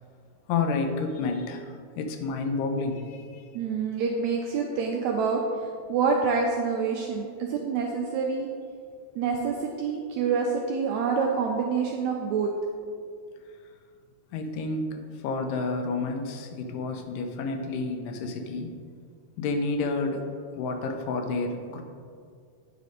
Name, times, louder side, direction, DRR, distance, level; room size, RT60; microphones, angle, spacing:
voice 1, 0.5-3.4 14.3-14.9 15.2-18.8 19.4-20.3 20.6-21.8, left 3 dB, 80° left, 5 dB, 2.3 m, -30 dB
voice 2, 3.5-5.4 5.9-8.5 9.1-12.5, right 5 dB, 90° right, 1 dB, 1.6 m, -27 dB
9.2 x 4.2 x 5.0 m, 2.1 s
omnidirectional pair, 3.8 m